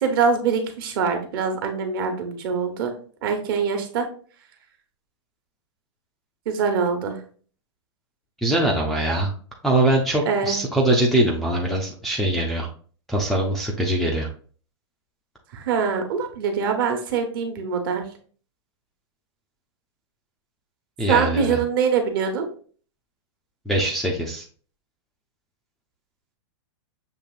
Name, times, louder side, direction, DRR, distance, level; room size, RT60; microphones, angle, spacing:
voice 1, 0.0-2.9 3.2-4.1 6.5-7.2 10.2-10.6 15.5-18.0 21.1-22.5, right 6 dB, 50° right, 5 dB, 1.0 m, -23 dB
voice 2, 8.4-9.3 9.6-12.7 13.1-14.3 21.0-21.6 23.7-24.4, right 1 dB, ahead, -3 dB, 0.3 m, -22 dB
6.6 x 2.9 x 2.4 m, 0.43 s
supercardioid pair, 160°, 15 cm